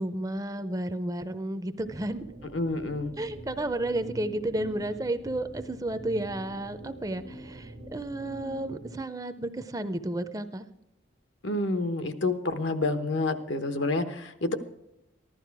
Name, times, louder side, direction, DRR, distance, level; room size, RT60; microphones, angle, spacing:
voice 1, 0.0-2.2 3.2-10.7, right 1 dB, 20° right, 11 dB, 0.5 m, -32 dB
sound 1, 1.8-9.0, right 1 dB, 80° right, 1.4 m, -45 dB
voice 2, 2.5-3.1 11.4-14.5, left 2 dB, 80° left, 9 dB, 1.1 m, -28 dB
15.0 x 12.0 x 4.7 m, 0.83 s
head